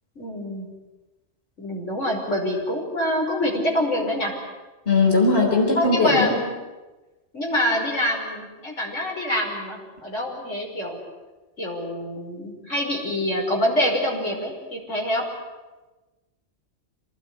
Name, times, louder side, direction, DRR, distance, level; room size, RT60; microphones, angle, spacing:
voice 1, 0.2-0.7 1.6-4.3 5.7-6.4 7.3-11.0 11.6-15.2, left 1 dB, 90° left, -1 dB, 6.1 m, -25 dB
voice 2, 4.9-6.3, left 3 dB, 55° left, 0 dB, 4.9 m, -19 dB
27.0 x 19.5 x 9.9 m, 1.2 s
omnidirectional pair, 1.2 m